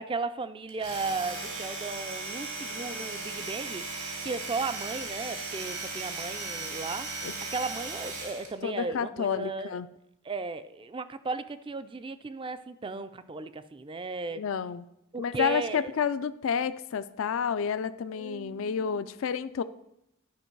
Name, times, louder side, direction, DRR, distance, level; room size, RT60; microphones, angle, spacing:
voice 1, 0.0-9.8 10.2-14.4 15.1-15.9 18.1-19.1, right 3 dB, 25° right, 12 dB, 0.3 m, -36 dB
Domestic sounds home sounds, 0.7-8.5, right 3 dB, 80° right, 2.9 m, -37 dB
voice 2, 8.6-9.9 14.3-14.9 15.2-19.6, left 7 dB, 65° left, 13 dB, 0.3 m, -30 dB
11.5 x 5.4 x 4.6 m, 0.84 s
head